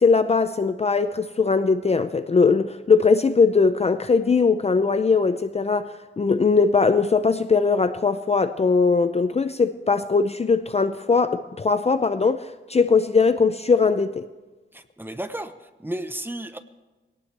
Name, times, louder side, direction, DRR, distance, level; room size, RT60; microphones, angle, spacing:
voice 1, 0.0-5.9 6.2-14.2, left 4 dB, 30° left, 11 dB, 0.5 m, -20 dB
voice 2, 14.7-15.5 15.8-16.6, right 1 dB, 10° right, 9 dB, 0.9 m, -32 dB
21.5 x 18.0 x 3.4 m, 1.2 s
wide cardioid pair, 125°, 21 cm